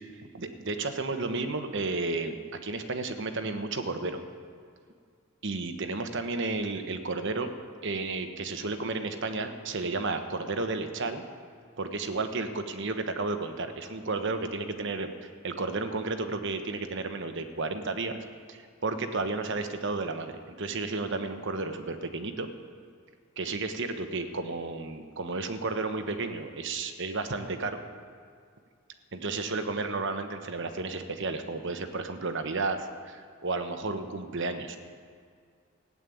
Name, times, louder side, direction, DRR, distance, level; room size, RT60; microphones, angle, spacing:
voice 1, 0.3-4.2 5.4-7.5 7.8-11.2 11.8-18.2 18.5-22.5 23.4-27.8 29.1-34.8, right 3 dB, 60° right, 7 dB, 1.1 m, -32 dB
15.0 x 8.6 x 9.3 m, 2.2 s
head